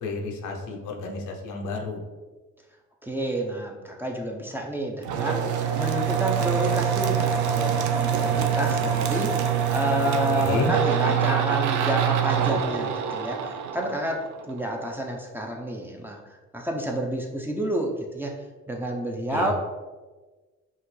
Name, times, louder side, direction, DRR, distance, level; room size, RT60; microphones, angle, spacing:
voice 1, 0.0-2.0 10.3-10.7 19.3-19.5, left 4 dB, 90° left, 1 dB, 0.8 m, -31 dB
voice 2, 3.0-16.2 16.5-18.3 18.7-19.5, right 1 dB, 5° right, 0 dB, 0.7 m, -30 dB
sound 1, 5.0-14.6, right 8 dB, 75° right, 0.5 m, -25 dB
5.6 x 2.6 x 3.2 m, 1.3 s
cardioid pair, 90°, 30 cm